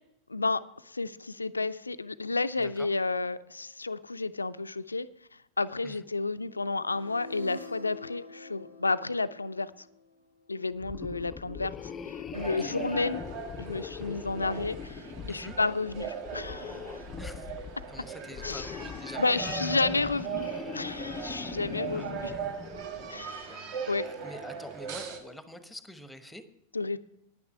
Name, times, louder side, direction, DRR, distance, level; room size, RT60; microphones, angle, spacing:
voice 1, 0.3-5.1 5.6-9.7 10.5-13.2 13.6-15.0 15.3-17.0 18.4-18.7 19.2-22.3 23.1-23.5 23.9-24.1 26.7-27.0, left 3 dB, 80° left, 0.4 m, -31 dB
sound 1, 6.4-10.5, left 1 dB, 85° right, 1.1 m, -46 dB
sound 2, 10.8-23.3, left 6 dB, 25° left, 0.5 m, -41 dB
sound 3, 12.3-25.2, right 6 dB, 50° right, 1.6 m, -39 dB
voice 2, 12.4-12.8 15.3-15.6 17.1-17.5 17.9-19.6 21.9-22.5 23.5-23.6 24.0-26.4, left 1 dB, 5° left, 1.0 m, -46 dB
10.0 x 9.6 x 5.5 m
figure-of-eight pair, 90°, 0 cm